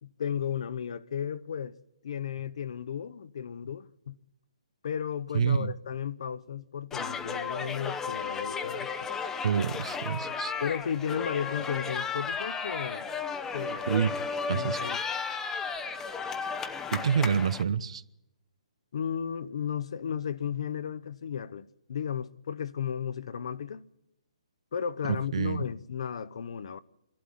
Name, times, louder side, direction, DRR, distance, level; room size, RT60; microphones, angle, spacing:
voice 1, 0.0-1.8 2.0-4.2 4.8-8.9 10.6-13.1 13.5-13.8 14.5-15.0 18.9-23.9 24.7-26.8, left 8 dB, 60° left, 0.9 m, -34 dB
voice 2, 5.3-5.7 9.4-10.5 13.9-14.1 14.5-14.8 16.9-18.0 25.3-25.6, right 7 dB, 60° right, 1.0 m, -27 dB
sound 1, 6.9-17.6, left 5 dB, 10° left, 0.8 m, -34 dB
25.5 x 12.0 x 10.0 m
hypercardioid pair, 150°, 4 cm